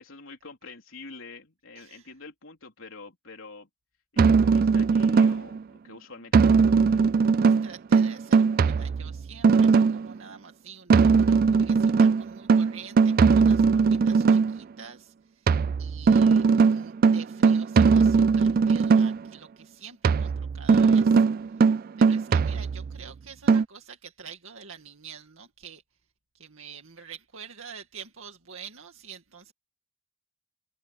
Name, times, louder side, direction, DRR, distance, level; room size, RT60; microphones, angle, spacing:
voice 1, 0.0-3.7 4.1-7.1, left 3 dB, 75° left, 3.9 m, -46 dB
voice 2, 1.8-2.1 7.4-25.8 26.3-29.5, right 6 dB, 75° right, 2.2 m, -47 dB
sound 1, 4.2-5.6 6.3-10.1 10.9-14.6 15.5-19.3 20.0-23.0 23.5-23.6, right 5 dB, 45° right, 0.3 m, -20 dB
head